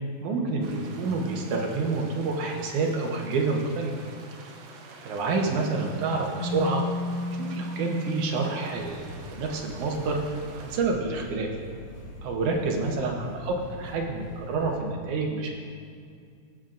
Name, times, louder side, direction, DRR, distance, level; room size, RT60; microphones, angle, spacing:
voice 1, 0.2-3.9 5.0-6.8 7.4-10.2 10.5-11.5 12.2-15.5, right 3 dB, 70° right, 1 dB, 2.1 m, -28 dB
sound 1, 0.6-10.8, right 4 dB, 85° right, 1.4 m, -48 dB
Keyboard (musical), 6.4-9.6, left 2 dB, 85° left, 3.3 m, -34 dB
sound 2, 8.7-14.8, left 2 dB, 50° left, 2.3 m, -45 dB
18.5 x 7.1 x 2.5 m, 2.3 s
omnidirectional pair, 4.2 m